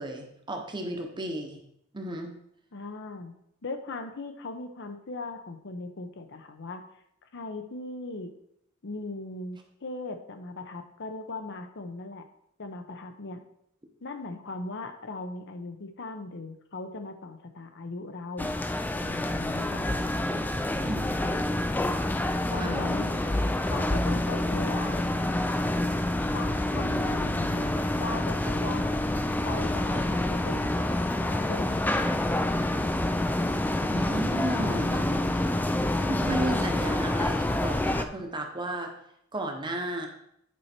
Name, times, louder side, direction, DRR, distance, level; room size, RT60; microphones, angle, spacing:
voice 1, 0.0-1.6 1.9-2.3 20.9-21.1 22.6-22.9 33.8-38.9 39.3-40.1, right 1 dB, 20° right, 3 dB, 1.0 m, -34 dB
voice 2, 2.7-3.3 3.6-6.8 7.3-8.3 8.8-12.3 12.6-13.4 14.0-18.5 19.0-19.9 22.5-23.2 23.7-25.0 26.3-28.9 29.4-30.8 31.2-31.8 33.9-34.0 34.6-35.4, left 3 dB, 60° left, 7 dB, 0.8 m, -38 dB
sound 1, 18.4-38.0, left 1 dB, 10° left, 0.3 m, -27 dB
9.3 x 4.5 x 4.4 m, 0.74 s
head